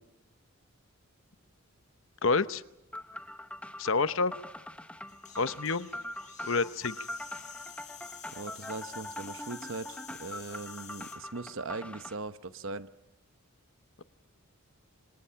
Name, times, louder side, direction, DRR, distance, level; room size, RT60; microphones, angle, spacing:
voice 1, 2.2-2.6 3.8-4.3 5.4-5.9 6.5-7.0, left 4 dB, 65° left, 13 dB, 0.8 m, -28 dB
sound 1, 2.9-12.1, left 1 dB, 5° left, 0.9 m, -43 dB
sound 2, 5.1-11.2, left 9 dB, 35° left, 4.8 m, -49 dB
voice 2, 8.3-12.9, right 3 dB, 60° right, 12 dB, 0.9 m, -40 dB
27.5 x 26.0 x 5.7 m, 0.89 s
head